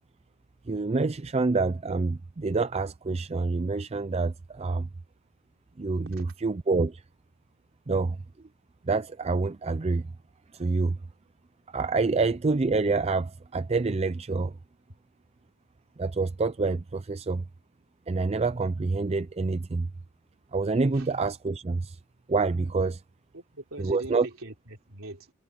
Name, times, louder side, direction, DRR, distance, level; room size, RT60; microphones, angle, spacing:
voice 1, 0.7-4.9 5.8-7.0 7.9-8.2 8.8-10.1 10.5-11.0 11.7-14.5 16.0-17.4 18.1-19.9 20.5-22.0 22.3-23.0 23.8-24.3, right 3 dB, 30° right, 0.4 m, -27 dB
voice 2, 23.3-25.3, right 2 dB, 65° right, 4.3 m, -42 dB
head